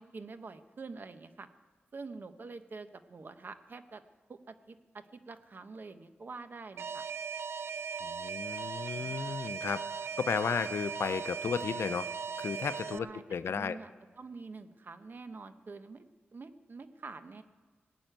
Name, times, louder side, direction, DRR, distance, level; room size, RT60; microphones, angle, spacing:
voice 1, 0.0-1.5 1.9-4.0 4.3-7.0 8.9-9.4 12.9-13.9 14.2-16.0 16.3-17.4, right 4 dB, 50° right, 9 dB, 0.9 m, -46 dB
Alarm, 6.8-13.0, right 6 dB, 90° right, 0.4 m, -38 dB
voice 2, 8.0-9.8 10.2-12.1 12.4-13.8, left 6 dB, 85° left, 13 dB, 0.6 m, -34 dB
18.5 x 6.4 x 9.0 m, 1.4 s
wide cardioid pair, 100°, 4 cm